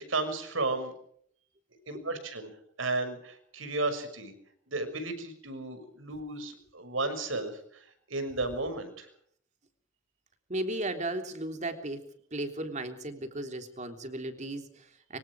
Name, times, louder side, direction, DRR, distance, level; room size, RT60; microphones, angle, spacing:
voice 1, 0.1-0.9 1.9-2.5 2.8-4.3 4.7-9.1, right 2 dB, 80° right, 8 dB, 6.4 m, -33 dB
voice 2, 10.5-12.0 12.3-15.2, right 1 dB, 35° right, 6 dB, 3.5 m, -35 dB
25.5 x 25.0 x 4.9 m, 0.64 s
head